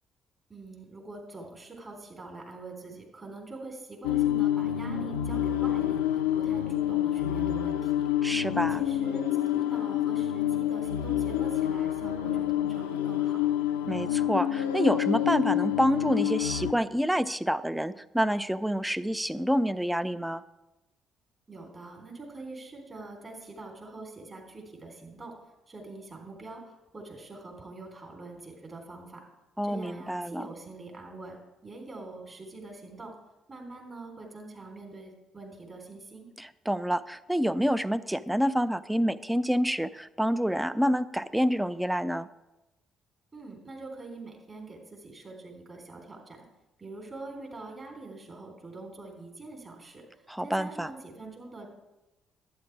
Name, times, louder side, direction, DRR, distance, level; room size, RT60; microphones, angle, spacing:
voice 1, 0.5-8.1 8.6-9.2 9.5-13.5 21.5-25.3 25.7-29.2 29.6-33.1 33.5-36.3 43.3-46.4 46.8-51.7, right 3 dB, 35° right, 1 dB, 3.6 m, -44 dB
sound 1, 4.0-16.7, left 11 dB, 75° left, 0.5 m, -28 dB
voice 2, 8.2-8.8 13.9-20.4 29.6-30.5 36.4-42.3 50.3-50.9, equal, 5° right, 14 dB, 0.5 m, -28 dB
11.5 x 9.2 x 4.7 m, 1.0 s
figure-of-eight pair, 45°, 0 cm